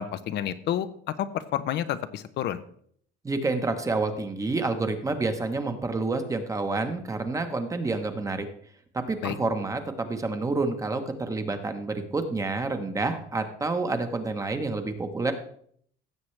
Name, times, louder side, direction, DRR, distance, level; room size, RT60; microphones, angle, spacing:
voice 1, 0.0-2.6 9.2-9.4, left 10 dB, 60° left, 12 dB, 0.6 m, -30 dB
voice 2, 3.2-8.5 8.9-15.3, right 3 dB, 15° right, 7 dB, 1.0 m, -28 dB
16.0 x 7.3 x 3.2 m, 0.62 s
cardioid pair, 150°, 20 cm